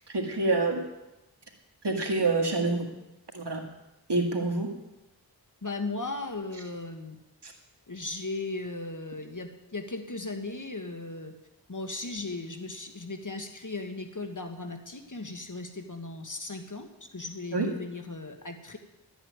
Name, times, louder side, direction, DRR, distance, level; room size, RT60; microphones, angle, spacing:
voice 1, 0.1-0.8 1.8-2.9 3.3-3.6 4.1-4.7 7.4-7.5 17.5-17.7, right 3 dB, 80° right, 2 dB, 1.9 m, -27 dB
voice 2, 5.6-7.2 7.9-11.3 11.7-16.9 17.1-18.8, left 3 dB, 50° left, 6 dB, 1.5 m, -37 dB
12.5 x 8.7 x 9.4 m, 0.96 s
wide cardioid pair, 45°, 41 cm